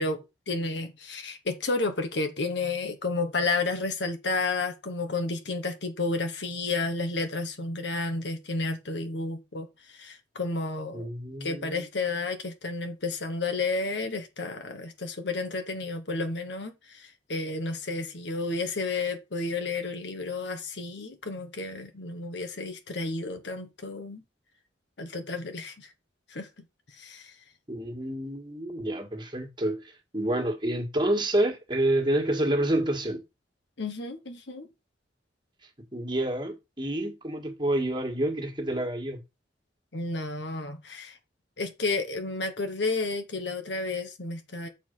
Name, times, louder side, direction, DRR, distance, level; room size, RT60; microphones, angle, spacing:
voice 1, 0.0-11.1 11.4-24.2 25.0-25.9 26.3-26.5 26.9-27.3 33.8-34.7 39.9-41.2 41.6-44.7, left 3 dB, 70° left, 1.2 m, -31 dB
voice 2, 10.9-11.9 27.7-33.2 35.9-39.2, right 1 dB, 25° right, 1.9 m, -28 dB
7.1 x 4.7 x 5.4 m
head